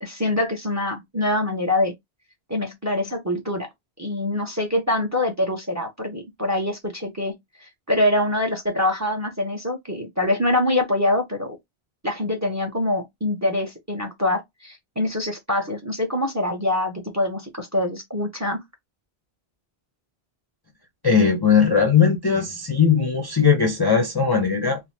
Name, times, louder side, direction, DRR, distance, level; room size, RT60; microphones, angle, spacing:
voice 1, 0.0-1.9 2.5-3.7 4.0-7.4 7.9-11.6 12.0-18.6, left 1 dB, 20° right, 0.6 m, -24 dB
voice 2, 21.0-24.8, left 6 dB, 30° left, 0.5 m, -19 dB
3.3 x 2.1 x 2.7 m
omnidirectional pair, 1.1 m